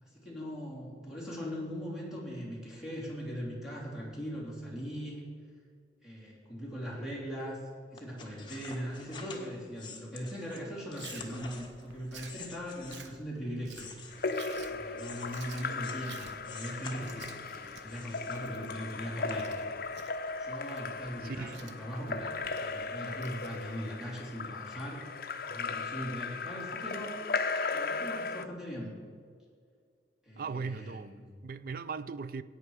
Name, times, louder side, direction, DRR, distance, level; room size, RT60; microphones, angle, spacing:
voice 1, 0.0-5.2 6.0-7.6 7.9-13.9 14.7-19.5 20.4-25.0 25.5-27.2 27.7-29.0 30.2-31.2, equal, 5° right, 3.0 m, -40 dB
sound 1, 8.0-13.2 13.7-16.1 16.4-17.5 17.9-18.9 19.3-19.4, left 5 dB, 25° left, 1.4 m, -48 dB
Chewing mastication, 11.0-24.0, right 5 dB, 85° right, 1.0 m, -53 dB
Splash splatter / Drip / Trickle dribble, 14.1-28.5, left 4 dB, 55° left, 0.6 m, -37 dB
voice 2, 21.2-21.6 30.4-32.4, right 5 dB, 55° right, 0.4 m, -39 dB
15.5 x 8.9 x 4.8 m
head